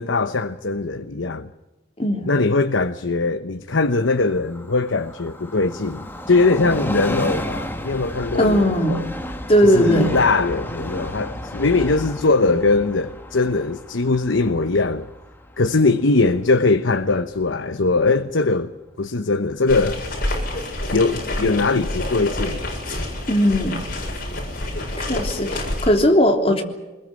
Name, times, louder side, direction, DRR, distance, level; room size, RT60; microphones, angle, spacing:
voice 1, 0.0-1.5 2.3-9.1 9.6-15.1 15.6-18.7 19.0-20.0 20.9-22.7, left 3 dB, 80° left, 1.0 m, -21 dB
voice 2, 2.0-2.3 8.3-9.0 9.5-10.2 23.3-23.9 25.0-26.6, equal, 30° left, 3.3 m, -18 dB
Train, 3.7-17.0 17.4-17.5, left 1 dB, 10° left, 1.9 m, -33 dB
sound 1, 19.7-25.9, left 1 dB, 50° left, 7.7 m, -28 dB
25.0 x 21.5 x 7.7 m
head